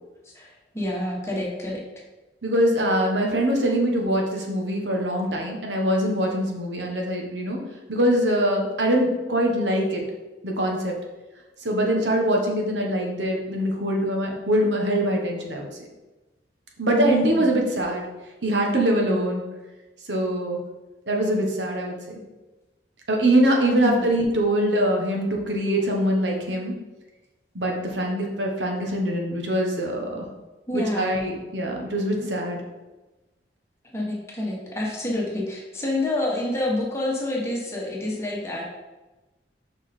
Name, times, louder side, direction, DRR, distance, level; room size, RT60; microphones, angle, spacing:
voice 1, 0.3-1.8 17.0-17.5 23.7-24.1 30.7-31.2 33.9-38.6, left 1 dB, 15° left, -3 dB, 1.4 m, -28 dB
voice 2, 2.4-7.6 7.9-10.0 10.4-10.9 11.6-15.7 16.8-18.0 18.4-19.4 20.1-20.6 21.1-21.9 23.1-26.7 27.5-30.2 30.7-32.6, right 1 dB, 85° right, 0 dB, 1.3 m, -23 dB
5.5 x 4.9 x 4.2 m, 1.1 s
head